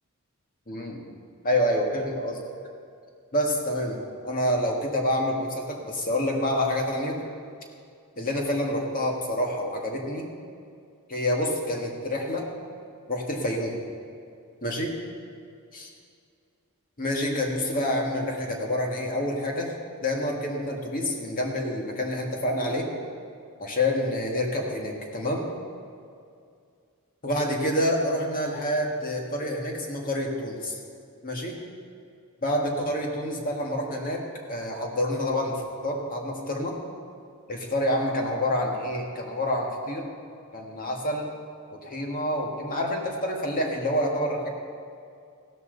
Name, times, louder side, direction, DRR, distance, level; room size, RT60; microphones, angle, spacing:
voice 1, 0.7-1.0 1.4-2.4 3.3-4.0 4.2-7.2 8.2-10.3 11.1-12.5 13.1-13.8 14.6-14.9 15.7-15.9 17.0-19.7 20.0-22.9 23.6-25.4 27.2-30.8 31.2-31.6 32.4-36.8 37.5-40.1 40.5-41.3 41.7-44.5, left 1 dB, 40° left, 0 dB, 1.8 m, -27 dB
15.5 x 13.5 x 4.0 m, 2.3 s
head